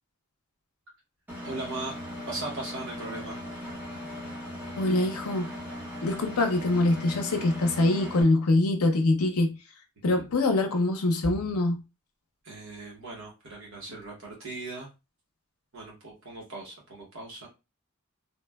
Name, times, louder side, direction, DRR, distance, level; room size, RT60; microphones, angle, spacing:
Engine, 1.3-8.2, left 1 dB, 10° right, 0.8 m, -39 dB
voice 1, 1.4-1.9 2.3-3.4 10.1-10.3 12.4-14.9 15.7-17.5, right 2 dB, 60° right, 0.9 m, -38 dB
voice 2, 4.7-5.5 6.0-9.6 10.0-11.8, left 2 dB, 80° left, 0.6 m, -24 dB
3.1 x 2.1 x 2.2 m
head